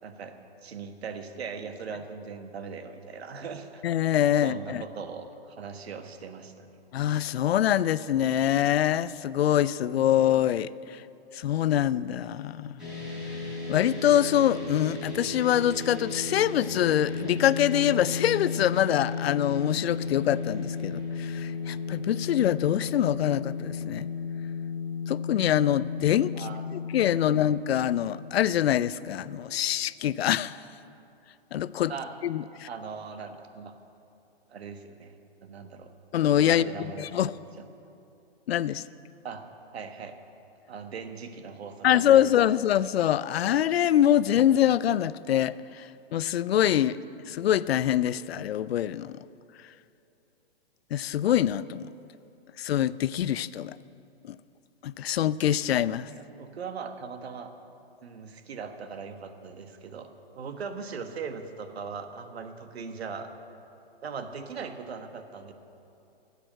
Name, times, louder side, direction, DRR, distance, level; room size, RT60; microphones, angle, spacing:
voice 1, 0.0-3.8 4.4-6.7 26.3-26.7 27.1-27.4 31.9-32.1 32.6-33.7 34.5-35.1 35.4-35.9 36.5-37.5 39.2-39.4 39.7-40.1 40.7-42.2 56.1-57.5 58.0-60.1 60.3-63.3 64.0-65.5, right 5 dB, 80° right, 7 dB, 1.3 m, -39 dB
voice 2, 3.8-4.8 6.9-11.0 11.3-12.8 13.7-24.1 25.1-26.5 26.7-30.6 31.5-31.9 32.2-32.7 36.1-37.3 38.5-38.8 41.8-47.0 47.3-49.3 50.9-51.9 52.6-53.8 54.2-54.4 54.8-56.1, left 11 dB, 75° left, 18 dB, 0.5 m, -25 dB
sound 1, 12.8-29.1, left 4 dB, ahead, 3.9 m, -34 dB
13.5 x 8.3 x 7.6 m, 2.7 s
hypercardioid pair, 160°, 31 cm